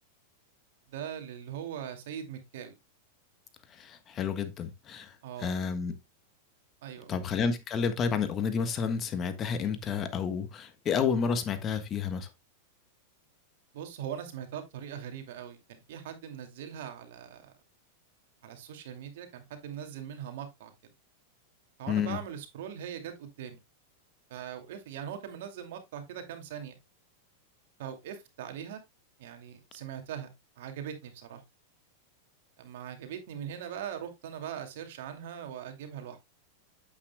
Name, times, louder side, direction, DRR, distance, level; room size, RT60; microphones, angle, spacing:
voice 1, 0.9-2.7 5.2-5.5 6.8-7.2 13.7-17.5 18.4-20.7 21.8-23.6 24.3-26.8 27.8-28.8 29.2-30.3 30.6-31.4 32.6-36.2, right 9 dB, 70° right, 2.4 m, -41 dB
voice 2, 3.8-5.1 5.4-5.9 7.1-12.3 21.9-22.2, left 6 dB, 30° left, 1.4 m, -30 dB
8.8 x 8.4 x 2.3 m
hypercardioid pair, 120°, 0 cm